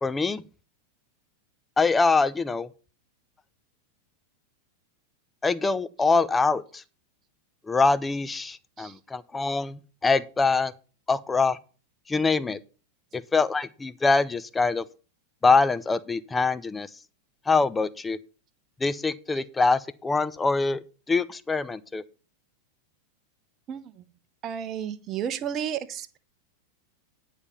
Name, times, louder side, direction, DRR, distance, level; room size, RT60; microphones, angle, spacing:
voice 1, 0.0-0.4 1.8-2.7 5.4-6.8 7.7-10.7 11.1-11.6 12.1-12.6 13.1-14.8 15.4-16.9 17.5-18.2 18.8-22.0, left 4 dB, 10° left, 0.6 m, -24 dB
voice 2, 24.4-26.2, right 9 dB, 30° right, 0.8 m, -32 dB
9.8 x 5.1 x 7.0 m
figure-of-eight pair, 90°, 0 cm